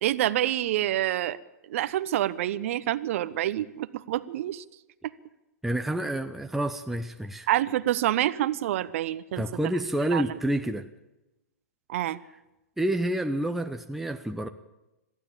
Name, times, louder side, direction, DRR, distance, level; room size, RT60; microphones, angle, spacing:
voice 1, 0.0-1.4 1.7-4.6 7.5-9.4 10.1-10.4 11.9-12.2, right 13 dB, 55° right, 15 dB, 0.9 m, -27 dB
voice 2, 5.6-7.5 9.4-10.9 12.8-14.5, right 1 dB, 5° right, 6 dB, 0.9 m, -28 dB
22.0 x 14.5 x 8.7 m, 0.99 s
figure-of-eight pair, 105°, 8 cm